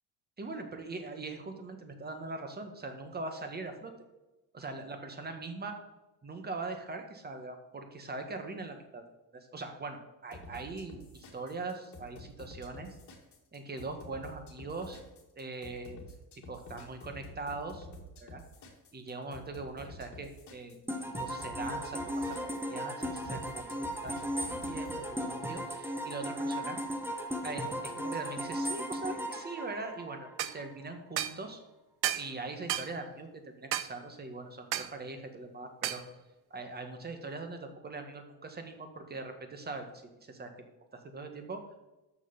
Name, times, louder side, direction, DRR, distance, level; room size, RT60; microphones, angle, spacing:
voice 1, 0.4-3.9 4.5-5.7 6.2-9.0 9.3-13.0 13.5-15.0 15.4-16.1 16.5-17.9 18.2-18.4 18.9-20.8 21.2-22.4 22.7-26.8 27.4-31.6 32.1-36.0 36.5-40.5 41.1-41.6, right 3 dB, 25° right, 6 dB, 1.6 m, -41 dB
sound 1, 10.3-25.0, left 1 dB, 40° left, 2.3 m, -49 dB
sound 2, 20.9-30.6, equal, 5° right, 1.1 m, -36 dB
sound 3, 30.4-30.6 31.2-31.4 32.0-32.3 32.7-32.9 33.7-33.9 34.7-34.9 35.8-36.0, right 13 dB, 60° right, 0.7 m, -32 dB
6.8 x 6.1 x 7.0 m, 1.0 s
cardioid pair, 115°, 42 cm